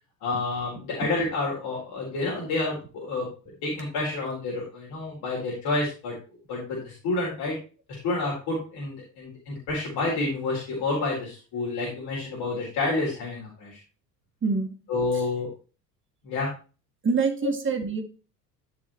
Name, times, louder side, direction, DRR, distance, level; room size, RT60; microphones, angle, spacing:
voice 1, 0.2-3.3 3.6-6.1 6.5-7.6 7.9-13.8 14.9-15.5 16.2-16.5 17.4-17.5, left 3 dB, 50° left, -4 dB, 4.4 m, -29 dB
voice 2, 14.4-14.8 15.1-15.2 17.0-18.0, right 4 dB, 25° right, 4 dB, 2.4 m, -26 dB
14.5 x 6.2 x 3.1 m, 0.35 s
figure-of-eight pair, 65°, 49 cm